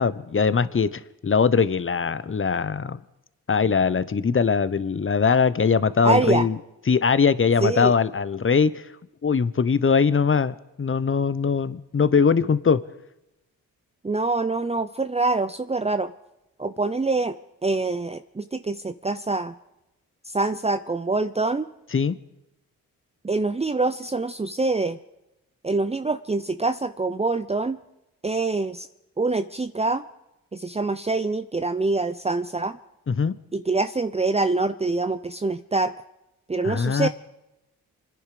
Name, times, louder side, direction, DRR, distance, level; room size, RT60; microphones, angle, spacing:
voice 1, 0.0-3.0 3.5-6.5 6.9-8.8 9.2-12.8 21.9-22.2 33.1-33.4 36.6-37.1, left 5 dB, 35° left, 16 dB, 1.1 m, -21 dB
voice 2, 6.0-6.5 7.6-7.9 14.0-16.1 16.6-17.4 17.6-19.5 20.2-21.7 23.2-25.0 25.6-27.8 28.2-28.9 29.2-30.0 30.5-32.8 33.5-35.9 36.5-37.1, right 3 dB, 15° right, 10 dB, 0.7 m, -25 dB
26.5 x 10.5 x 5.0 m, 0.92 s
supercardioid pair, 50°, 36 cm